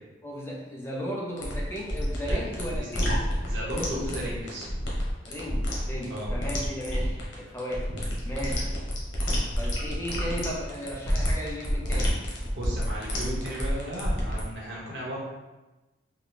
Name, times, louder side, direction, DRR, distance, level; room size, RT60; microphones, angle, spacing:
voice 1, 0.2-3.3 5.2-7.9 8.2-8.7 9.6-12.2, equal, 15° left, -4 dB, 0.6 m, -35 dB
sound 1, 1.4-14.4, equal, 90° left, 1.0 m, -29 dB
voice 2, 3.2-4.7 6.1-6.3 7.9-8.0 8.5-8.6 12.5-15.2, equal, 60° right, -5 dB, 1.1 m, -35 dB
3.9 x 2.3 x 3.2 m, 1.1 s
head